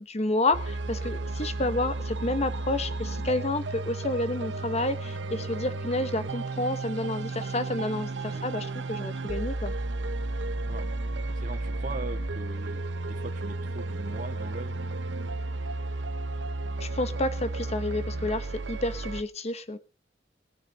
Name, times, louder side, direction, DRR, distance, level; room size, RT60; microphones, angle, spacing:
voice 1, 0.1-9.7 16.8-19.8, left 2 dB, 35° left, 11 dB, 1.2 m, -30 dB
sound 1, 0.5-19.2, right 2 dB, 80° right, 0.8 m, -33 dB
voice 2, 11.3-14.8, right 2 dB, 45° right, 4 dB, 1.8 m, -41 dB
20.5 x 9.1 x 4.1 m, 0.33 s
head